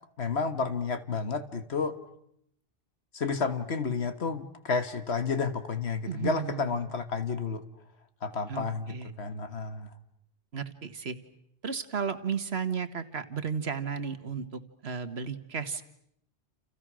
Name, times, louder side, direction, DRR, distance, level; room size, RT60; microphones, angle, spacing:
voice 1, 0.2-1.9 3.1-7.6 8.2-9.9, left 4 dB, 75° left, 10 dB, 1.8 m, -31 dB
voice 2, 6.1-6.7 8.5-9.1 10.5-11.2 11.6-15.9, right 6 dB, 75° right, 11 dB, 1.7 m, -34 dB
29.5 x 29.0 x 6.3 m, 0.73 s
omnidirectional pair, 1.1 m